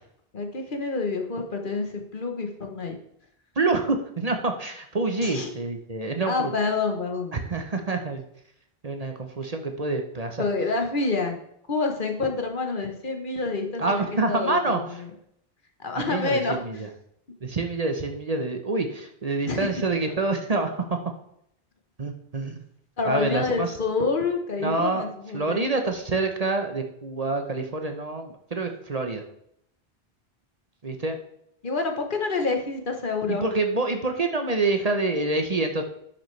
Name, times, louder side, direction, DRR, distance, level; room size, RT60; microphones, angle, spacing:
voice 1, 0.3-3.0 5.2-5.5 6.3-7.5 10.4-11.4 11.7-15.1 15.8-16.8 19.5-19.8 23.0-25.6 31.6-33.4, left 4 dB, 55° left, 4 dB, 1.3 m, -28 dB
voice 2, 3.6-6.5 7.3-8.2 8.8-10.4 13.8-15.0 15.9-16.9 17.4-21.0 22.0-22.6 23.0-23.8 24.6-25.1 25.3-29.2 30.8-31.2 33.3-35.8, right 3 dB, 40° right, 5 dB, 1.0 m, -27 dB
11.5 x 6.6 x 3.3 m, 0.71 s
omnidirectional pair, 1.1 m